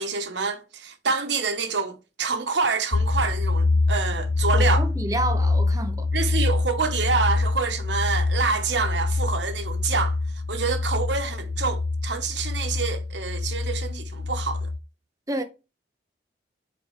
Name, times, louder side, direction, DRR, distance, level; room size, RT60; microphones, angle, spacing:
voice 1, 0.0-4.9 6.1-10.2 10.5-14.7, right 4 dB, 80° right, 1.1 m, -27 dB
sound 1, 2.9-14.8, left 3 dB, 35° left, 0.4 m, -25 dB
voice 2, 4.5-6.1 15.3-15.4, right 1 dB, 20° right, 0.8 m, -29 dB
7.6 x 4.5 x 3.3 m
head